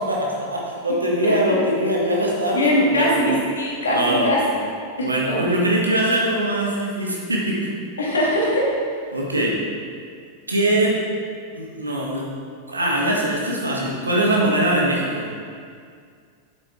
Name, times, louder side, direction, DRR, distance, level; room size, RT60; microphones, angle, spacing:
voice 1, 0.0-3.3 3.9-4.3 5.0-7.7 9.1-9.6 10.5-11.0 11.5-12.3 12.7-15.2, right 1 dB, 80° right, -3 dB, 1.7 m, -22 dB
voice 2, 1.2-1.6 2.5-4.4 5.0-5.4 8.0-8.7, equal, 70° left, -4 dB, 2.2 m, -21 dB
9.2 x 7.9 x 3.8 m, 2.1 s
figure-of-eight pair, 90°, 0 cm